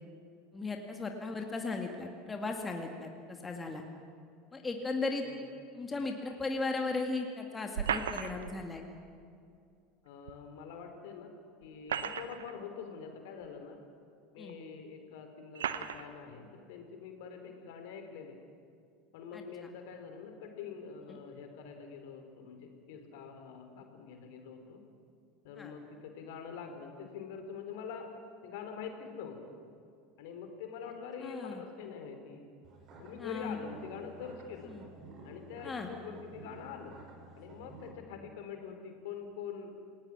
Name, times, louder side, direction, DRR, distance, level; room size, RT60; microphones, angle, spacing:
voice 1, 0.5-3.8 4.5-5.3 5.7-8.8 14.4-14.5 19.3-19.4 25.6-25.7 31.2-31.6 33.2-33.5 34.7-34.8 35.6-35.9, left 3 dB, 15° left, 3 dB, 2.3 m, -36 dB
sound 1, 7.7-8.6 10.3-10.4 11.6-12.6 13.4-13.5 14.5-14.6 15.5-16.1, right 8 dB, 70° right, 1.0 m, -35 dB
voice 2, 10.0-13.8 14.3-18.4 19.1-24.8 25.4-28.1 28.4-29.5 30.2-32.5 33.0-34.8 35.2-37.0 37.4-39.7, left 6 dB, 60° left, 6 dB, 3.2 m, -45 dB
sound 2, 32.6-37.9, right 3 dB, 40° right, 5.6 m, -52 dB
28.5 x 19.0 x 6.2 m, 2.4 s
figure-of-eight pair, 75°, 0 cm